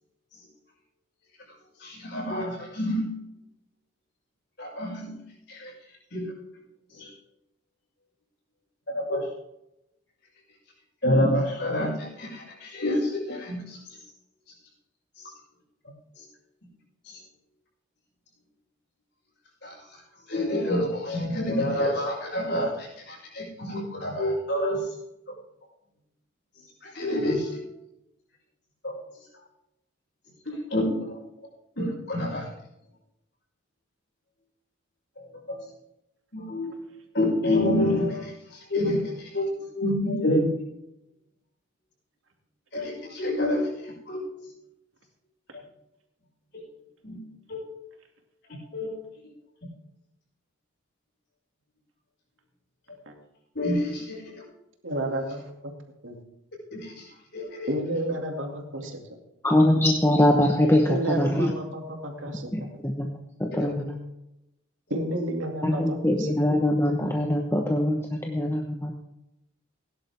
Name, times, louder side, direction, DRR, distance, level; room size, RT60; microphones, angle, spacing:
voice 1, 1.8-3.1 4.6-5.1 5.5-5.7 6.1-6.2 7.0-7.1 8.9-9.2 11.0-13.8 19.6-19.7 20.3-24.9 26.8-27.5 28.8-28.9 30.5-30.8 31.8-32.4 36.3-36.7 37.1-38.3 38.7-39.0 39.3-39.5 39.7-40.5 42.7-43.7 44.1-44.2 47.0-47.2 47.5-47.7 48.7-48.9 53.5-54.2 56.7-56.9 57.3-57.7 63.6-63.7, left 1 dB, 60° left, -4 dB, 6.1 m, -27 dB
voice 2, 54.8-55.5 56.0-56.2 57.7-59.0 60.9-62.7 64.9-66.3, right 1 dB, 75° right, 2 dB, 2.4 m, -31 dB
voice 3, 59.4-61.5 62.5-63.1 63.4-64.0 65.6-68.9, left 1 dB, 10° left, 1 dB, 1.0 m, -23 dB
17.0 x 11.0 x 3.5 m, 0.85 s
head